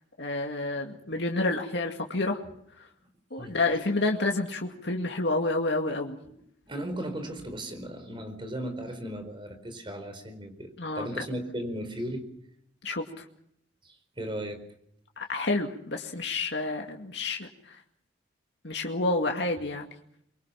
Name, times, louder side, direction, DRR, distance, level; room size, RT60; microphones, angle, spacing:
voice 1, 0.2-2.4 3.3-6.2 10.8-11.1 12.8-13.2 15.2-17.8 18.6-19.9, left 2 dB, 70° left, 2 dB, 2.3 m, -29 dB
voice 2, 6.2-12.3 13.8-14.6, equal, 25° right, 7 dB, 4.5 m, -37 dB
24.0 x 24.0 x 5.8 m, 0.71 s
head